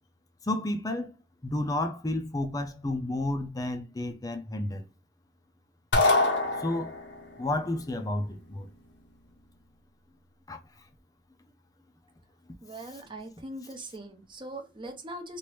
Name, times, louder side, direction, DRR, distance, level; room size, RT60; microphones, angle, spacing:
voice 1, 0.4-1.1 1.4-4.9 6.6-6.9 7.4-8.7 10.5-10.6, left 1 dB, 20° left, 0.5 m, -31 dB
sound 1, 5.9-7.2, left 2 dB, 90° left, 0.9 m, -24 dB
voice 2, 12.6-15.4, right 1 dB, 25° right, 0.7 m, -41 dB
3.0 x 2.5 x 3.1 m
head